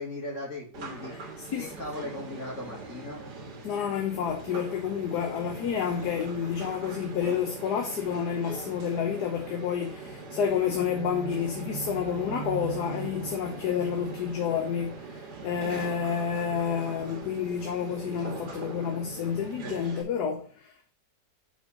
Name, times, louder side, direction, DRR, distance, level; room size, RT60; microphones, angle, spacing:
voice 1, 0.0-1.2 1.6-3.2, left 1 dB, 45° left, 2.1 m, -38 dB
sound 1, 0.7-20.0, right 4 dB, 65° right, 1.9 m, -41 dB
voice 2, 1.1-1.7 3.6-20.9, left 7 dB, 65° left, 1.3 m, -30 dB
4.8 x 4.6 x 5.7 m
omnidirectional pair, 1.9 m